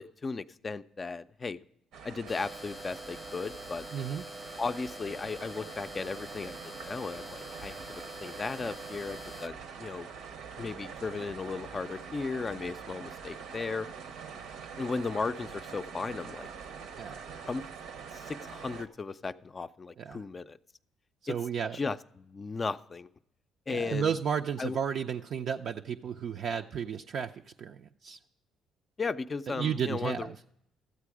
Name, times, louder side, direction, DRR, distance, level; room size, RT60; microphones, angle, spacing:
voice 1, 0.0-1.6 2.0-3.9 4.6-10.1 10.6-13.9 14.8-16.5 17.5-17.6 18.1-20.6 21.7-23.1 23.7-24.1 24.6-24.8 29.0-30.3, left 4 dB, 35° left, 12 dB, 0.4 m, -36 dB
sound 1, 1.9-18.9, right 6 dB, 75° right, 0.7 m, -45 dB
sound 2, 2.3-9.5, equal, 5° left, 0.7 m, -45 dB
voice 2, 3.9-4.2 16.9-17.2 20.0-20.2 21.2-21.8 23.7-27.3 27.6-28.2 29.5-30.3, right 7 dB, 60° right, 3 dB, 0.4 m, -33 dB
13.0 x 8.2 x 4.8 m, 0.78 s
supercardioid pair, 65°, 0 cm